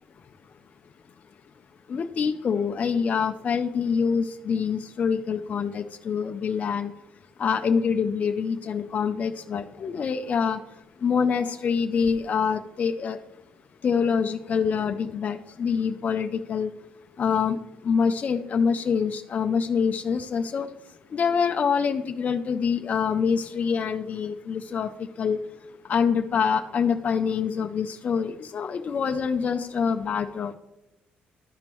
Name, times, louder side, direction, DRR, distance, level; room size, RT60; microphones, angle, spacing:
voice 1, 1.9-6.9 7.4-10.6 11.0-13.2 13.8-16.7 17.2-17.6 17.8-20.7 21.1-24.9 25.2-25.4 25.9-30.5, left 6 dB, 45° left, 6 dB, 0.4 m, -25 dB
12.5 x 5.2 x 3.0 m, 1.0 s
cardioid pair, 100°, 4 cm